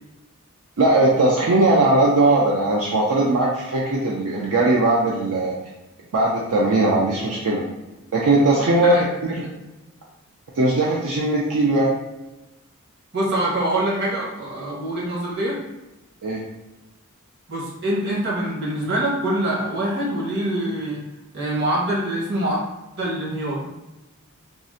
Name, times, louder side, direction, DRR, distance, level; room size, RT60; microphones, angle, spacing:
voice 1, 0.8-5.6 6.1-7.6 8.1-9.0 9.3-9.4 10.5-12.0 16.2-16.5, right 2 dB, 75° right, -4 dB, 0.5 m, -19 dB
voice 2, 13.1-15.6 17.5-21.0 21.3-22.6 23.0-23.7, right 1 dB, 50° right, -5 dB, 1.0 m, -24 dB
3.6 x 2.1 x 2.6 m, 1.0 s
head